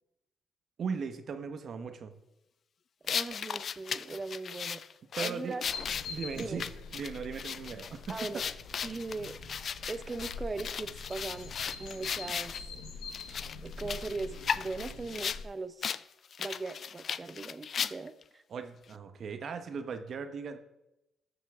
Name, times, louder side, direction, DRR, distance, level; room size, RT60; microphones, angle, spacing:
voice 1, 0.8-2.1 5.2-5.6 6.1-8.4 18.5-20.6, right 5 dB, 55° right, 8 dB, 0.9 m, -38 dB
voice 2, 3.0-4.8 5.2-5.6 6.3-6.6 8.1-8.4 8.8-9.4 9.9-11.5 11.8-12.6 13.6-15.9 16.4-18.4, right 3 dB, 25° right, 12 dB, 0.6 m, -39 dB
sound 1, 3.1-12.6 13.1-15.4 15.8-16.0 16.3-18.2, left 7 dB, 50° left, 0.3 m, -36 dB
sound 2, 5.6-15.5, left 4 dB, 90° left, 1.1 m, -45 dB
13.0 x 7.2 x 3.5 m, 0.89 s
cardioid pair, 90°, 0 cm